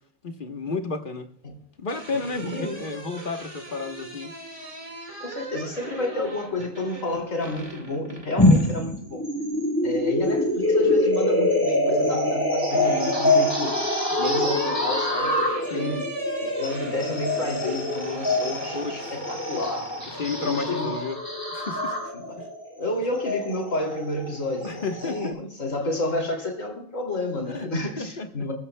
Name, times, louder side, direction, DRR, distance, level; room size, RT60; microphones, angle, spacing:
voice 1, 0.2-1.3 1.8-4.3 15.7-16.0 18.7-19.1 20.2-21.2 21.5-22.5 24.6-25.4 27.5-27.7 28.0-28.5, left 4 dB, 40° left, 6 dB, 1.3 m, -32 dB
sound 1, 1.6-8.8 10.3-11.0 12.2-20.7, right 1 dB, 25° right, 2.1 m, -40 dB
voice 2, 2.1-2.9 5.2-9.2 9.8-13.7 14.2-16.1 16.5-19.9 20.4-21.0 22.3-22.4 22.8-28.5, left 2 dB, 70° left, 2 dB, 3.1 m, -30 dB
sound 2, 8.4-25.3, left 1 dB, 15° left, 4.8 m, -25 dB
23.5 x 14.0 x 2.2 m, 0.65 s
omnidirectional pair, 1.4 m